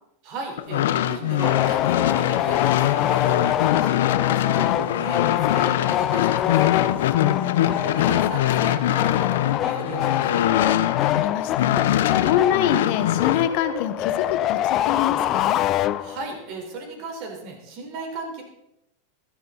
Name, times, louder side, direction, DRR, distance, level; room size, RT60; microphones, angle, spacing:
voice 1, 0.2-6.7 7.7-10.5 16.0-18.4, right 3 dB, 55° right, 2 dB, 4.1 m, -36 dB
sound 1, 0.6-11.2 11.6-13.5, left 12 dB, 75° left, 0.8 m, -23 dB
sound 2, 1.4-16.4, left 12 dB, 40° left, 0.6 m, -25 dB
voice 2, 7.1-7.8 11.1-15.6, left 10 dB, 60° left, 9 dB, 1.5 m, -26 dB
14.0 x 13.5 x 4.1 m, 0.81 s
hypercardioid pair, 115°, 0 cm